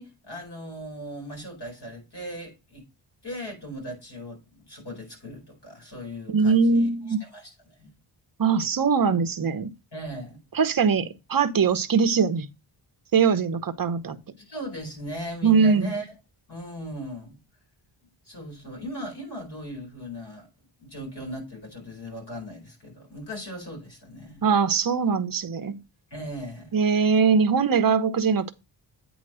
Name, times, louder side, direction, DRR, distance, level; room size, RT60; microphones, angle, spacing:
voice 1, 0.0-2.8 3.2-7.5 7.8-7.9 9.9-10.4 14.4-16.1 16.5-17.4 18.3-20.5 20.8-24.5 26.1-26.8, equal, 50° left, 4.8 m, -38 dB
voice 2, 6.3-7.2 8.4-9.7 10.5-12.5 13.1-14.2 15.4-15.9 24.4-25.8 26.7-28.5, right 5 dB, 45° right, 0.9 m, -21 dB
8.7 x 3.1 x 6.1 m
wide cardioid pair, 95°, 49 cm